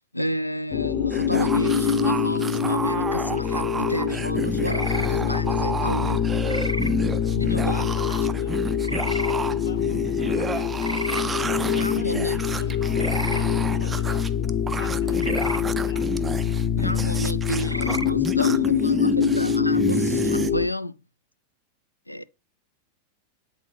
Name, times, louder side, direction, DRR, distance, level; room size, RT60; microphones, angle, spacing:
voice 1, 0.0-6.3 7.3-8.0 11.7-12.4 16.7-21.0 22.1-22.2, equal, 90° left, 0.3 m, -31 dB
sound 1, 0.7-20.7, left 7 dB, 40° left, 0.6 m, -24 dB
sound 2, 1.1-20.5, right 4 dB, 15° right, 0.3 m, -32 dB
sound 3, 4.6-5.1 6.5-6.9 8.8-9.3 10.8-11.2 13.0-13.4 15.2-15.6 17.6-18.1, right 1 dB, 90° right, 0.4 m, -32 dB
voice 2, 7.6-11.3 11.6-14.3 14.6-16.2, left 6 dB, 65° left, 1.2 m, -41 dB
8.1 x 4.0 x 3.3 m
figure-of-eight pair, 90°, 0 cm